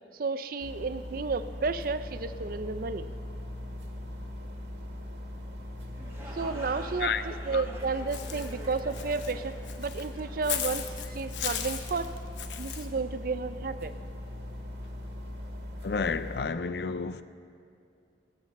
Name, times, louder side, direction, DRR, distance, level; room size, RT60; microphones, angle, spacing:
voice 1, 0.1-3.1 6.3-10.9 11.1-12.1 12.6-13.9, right 4 dB, 50° right, 0.5 m, -32 dB
sound 1, 0.6-16.5, left 1 dB, 75° right, 1.8 m, -40 dB
sound 2, 5.8-11.5, right 1 dB, 15° right, 1.8 m, -47 dB
Walk footsteps / Bird, 8.1-12.9, left 9 dB, 85° left, 1.0 m, -37 dB
voice 2, 15.8-17.2, left 5 dB, 60° left, 0.4 m, -30 dB
16.5 x 8.6 x 7.1 m
head